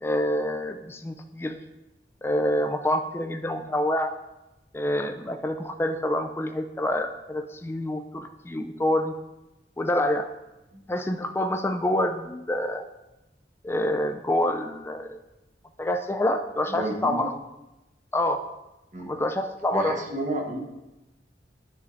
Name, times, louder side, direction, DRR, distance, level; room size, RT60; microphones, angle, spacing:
voice 1, 0.0-1.6 2.2-4.1 4.7-9.1 9.8-10.3 10.9-12.9 13.6-15.2 15.8-17.4 18.1-18.4 19.0-20.0, left 1 dB, 15° left, 6 dB, 0.3 m, -27 dB
voice 2, 16.7-17.3 18.9-19.1 19.7-20.6, right 1 dB, 45° right, 1 dB, 1.1 m, -31 dB
10.5 x 6.4 x 2.6 m, 0.98 s
head